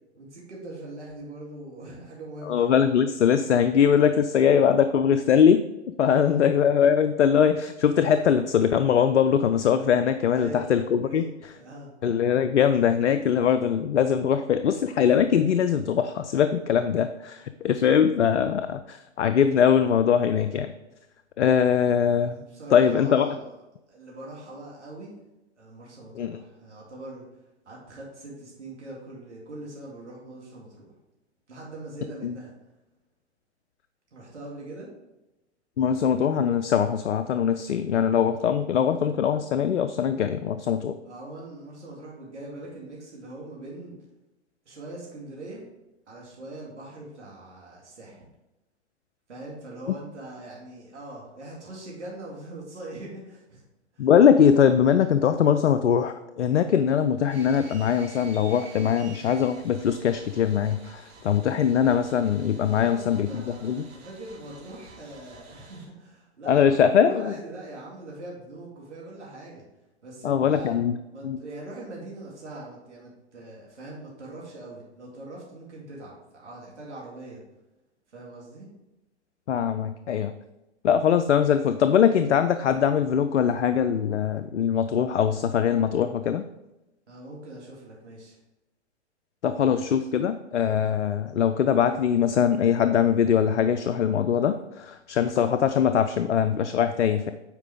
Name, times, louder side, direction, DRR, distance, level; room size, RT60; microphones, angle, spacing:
voice 1, 0.2-2.7 6.1-6.4 10.3-10.7 11.0-11.9 22.3-23.5 23.9-25.1 25.6-27.3 27.7-30.9 31.5-32.5 34.1-34.9 41.0-44.0 44.7-45.6 46.1-48.2 49.3-53.6 53.9-54.1 62.7-69.6 70.0-70.8 71.1-77.4 78.1-78.7 87.1-88.4, right 2 dB, 80° right, -4 dB, 2.4 m, -42 dB
voice 2, 2.5-5.6 6.0-11.2 12.0-20.7 21.4-22.4 22.7-23.3 26.2-26.4 32.2-32.3 35.8-41.0 49.9-50.0 54.0-63.8 66.5-67.4 70.2-71.0 71.2-71.4 79.5-80.3 80.8-86.4 89.4-97.3, left 8 dB, 80° left, 10 dB, 0.6 m, -22 dB
sound 1, 57.3-65.9, right 3 dB, 65° right, 2.4 m, -49 dB
9.1 x 4.7 x 3.6 m, 0.97 s
figure-of-eight pair, 115°, 34 cm